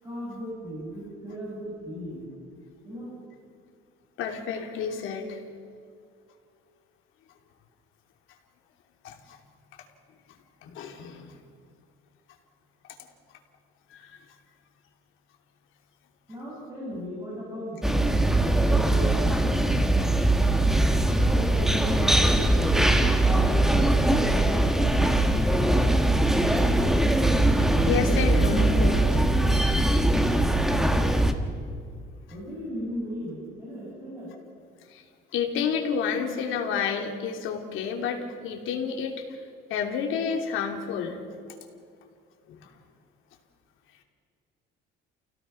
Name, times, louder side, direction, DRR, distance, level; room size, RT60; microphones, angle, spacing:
voice 1, 0.0-2.3 2.8-3.1 16.3-20.2 21.0-24.9 32.3-34.3, right 1 dB, 15° right, -7 dB, 6.9 m, -37 dB
voice 2, 4.2-5.4 9.0-9.4 10.6-11.3 13.9-14.1 25.4-25.6 27.8-29.2 34.9-35.0 35.3-39.2 39.7-41.2 42.5-42.7, left 6 dB, 70° left, 3 dB, 3.1 m, -30 dB
sound 1, 17.8-31.3, right 1 dB, ahead, 1.4 m, -21 dB
29.5 x 17.0 x 5.9 m, 2.4 s
cardioid pair, 145°, 21 cm